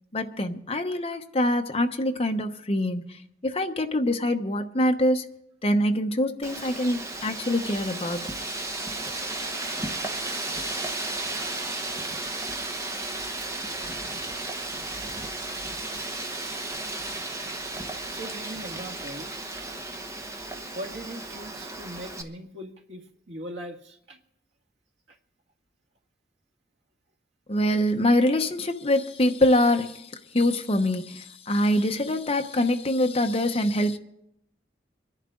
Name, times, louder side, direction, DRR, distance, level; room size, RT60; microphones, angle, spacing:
voice 1, 0.1-5.3 5.6-8.2 27.5-30.1 30.3-34.0, left 1 dB, 35° left, 6 dB, 0.9 m, -24 dB
Wind, 6.4-22.2, right 2 dB, 15° right, 1.1 m, -34 dB
voice 2, 18.1-19.3 20.7-24.2, right 1 dB, 85° right, 2 dB, 1.9 m, -40 dB
25.5 x 11.0 x 3.8 m, 0.79 s
head